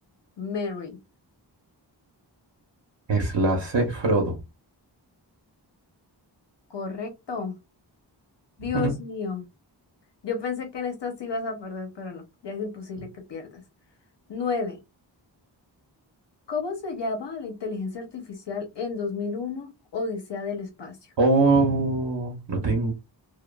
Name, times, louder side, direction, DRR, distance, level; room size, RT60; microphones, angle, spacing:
voice 1, 0.4-1.0 6.7-7.5 8.6-9.4 10.2-13.6 14.3-14.8 16.5-21.0, left 4 dB, 70° left, 0.8 m, -32 dB
voice 2, 3.1-4.3 8.7-8.9 21.2-22.9, right 3 dB, 70° right, 0.9 m, -22 dB
2.9 x 2.2 x 2.3 m
wide cardioid pair, 85°, 44 cm